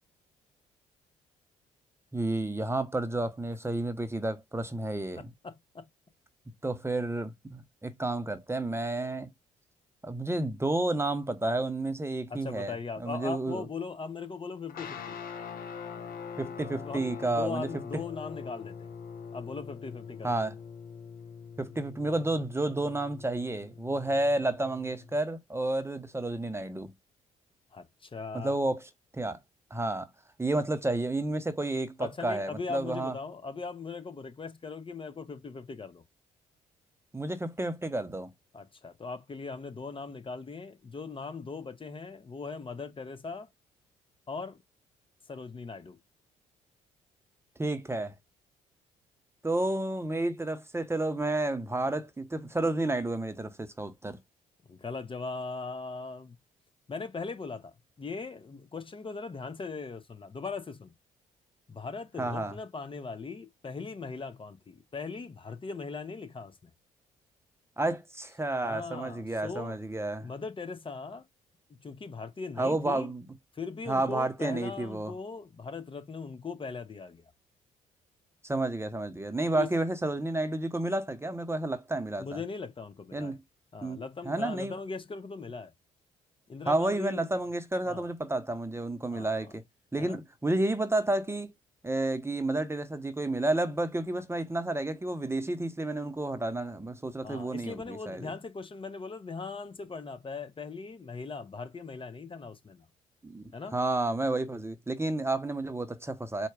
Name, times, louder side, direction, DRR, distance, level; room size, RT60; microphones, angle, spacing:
voice 1, 2.1-5.3 6.6-9.3 10.0-13.7 16.4-17.7 20.2-20.5 21.6-26.9 28.3-29.4 29.7-30.1 30.4-33.1 37.1-38.3 47.6-48.1 49.4-54.2 62.2-62.5 67.8-70.3 72.6-73.2 73.9-75.1 78.4-82.4 83.1-83.4 83.8-84.7 86.7-89.6 89.9-91.5 91.8-98.3 103.2-103.4 103.7-106.5, right 2 dB, 15° right, 0.8 m, -31 dB
voice 2, 5.2-5.8 12.3-15.2 16.8-18.9 19.3-20.3 27.7-28.5 32.0-36.0 38.5-43.5 44.3-44.6 45.3-46.0 54.7-56.4 56.9-60.9 61.7-66.7 68.6-69.7 70.2-71.2 71.7-73.1 73.5-77.2 79.5-79.7 82.2-83.4 83.7-85.7 86.5-87.3 87.9-88.1 89.1-89.5 90.0-90.2 97.2-102.8 103.5-103.8, left 4 dB, 30° left, 1.0 m, -39 dB
sound 1, 14.7-25.2, left 6 dB, 55° left, 1.0 m, -43 dB
4.5 x 2.2 x 4.6 m
hypercardioid pair, 50°, 18 cm